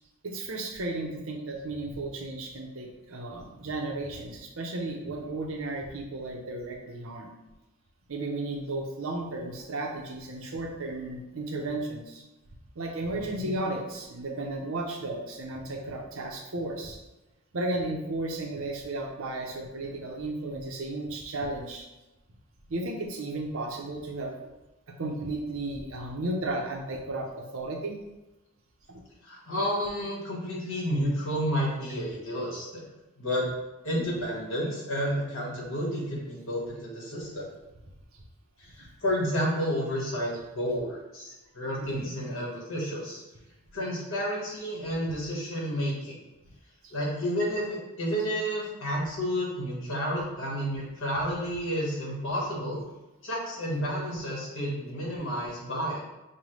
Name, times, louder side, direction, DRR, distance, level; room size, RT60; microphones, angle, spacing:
voice 1, 0.2-7.3 8.1-12.2 12.8-17.0 17.5-21.9 22.7-24.3 24.9-28.0 28.9-29.0 41.8-42.2 46.8-46.9, right 2 dB, 70° right, 1 dB, 0.7 m, -34 dB
voice 2, 13.1-13.5 29.2-32.8 33.2-33.5 33.8-37.5 38.6-43.2 43.7-46.2 46.9-52.8 53.2-56.0, equal, 65° left, -4 dB, 1.4 m, -31 dB
5.4 x 2.2 x 3.1 m, 1.0 s
head